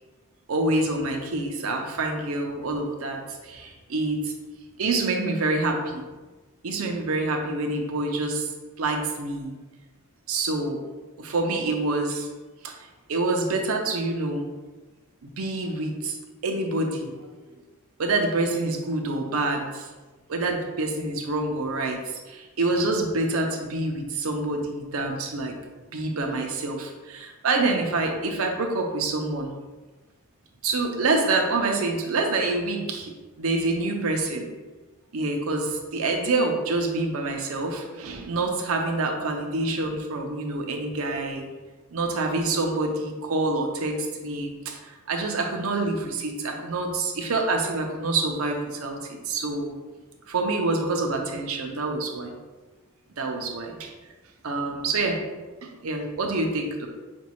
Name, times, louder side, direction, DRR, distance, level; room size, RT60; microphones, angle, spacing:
voice 1, 0.5-4.3 4.8-6.0 6.6-8.5 8.8-9.5 10.3-10.8 11.2-12.3 12.6-12.8 13.1-14.5 15.2-16.2 16.4-17.1 18.0-19.9 20.3-25.6 25.9-29.5 30.6-34.4 35.1-41.5 41.9-49.7 50.3-52.3 53.2-53.9 54.4-55.2 55.6-56.9, right 2 dB, 75° right, 3 dB, 0.6 m, -27 dB
5.1 x 2.3 x 2.9 m, 1.2 s
head